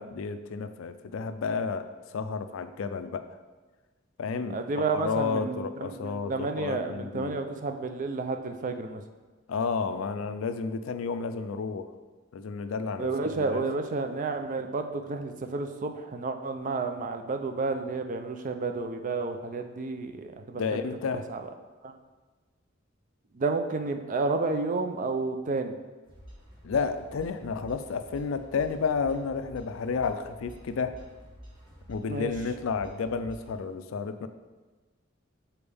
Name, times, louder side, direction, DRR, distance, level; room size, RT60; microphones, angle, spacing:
voice 1, 0.0-3.3 4.2-4.6 4.9-7.4 9.5-11.9 12.3-13.6 20.5-21.3 26.6-31.0 31.9-34.3, left 5 dB, 80° left, 10 dB, 0.4 m, -31 dB
voice 2, 4.5-9.0 13.0-20.6 21.3-21.4 21.8-21.9 23.3-25.7 32.1-32.3, right 3 dB, 40° right, 6 dB, 0.4 m, -31 dB
sound 1, 26.0-33.5, equal, 25° right, 1.6 m, -49 dB
6.9 x 4.3 x 3.4 m, 1.3 s
head